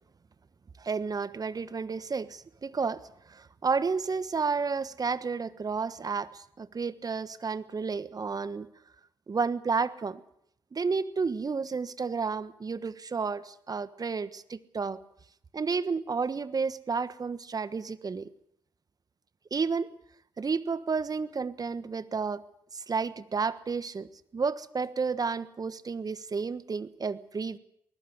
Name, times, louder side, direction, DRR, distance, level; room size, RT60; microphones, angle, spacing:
voice 1, 0.8-8.7 9.3-10.2 10.7-15.0 15.5-18.3 19.5-19.9 20.4-22.4 22.7-27.6, right 5 dB, 40° right, 14 dB, 1.3 m, -31 dB
20.5 x 20.0 x 7.0 m, 0.73 s
hypercardioid pair, 45°, 10 cm